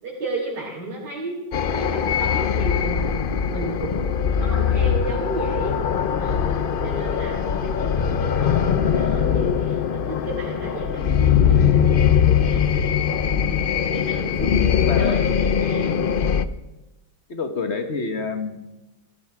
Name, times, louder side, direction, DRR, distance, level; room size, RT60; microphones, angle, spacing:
voice 1, 0.0-1.4 1.6-5.7 6.2-13.4 13.9-16.1, right 2 dB, 80° right, -6 dB, 4.6 m, -33 dB
sound 1, 1.5-16.5, left 8 dB, 65° left, 0.5 m, -21 dB
voice 2, 14.7-15.3 17.3-18.8, left 4 dB, 45° left, 8 dB, 1.6 m, -28 dB
17.5 x 14.0 x 5.9 m, 1.0 s
omnidirectional pair, 1.8 m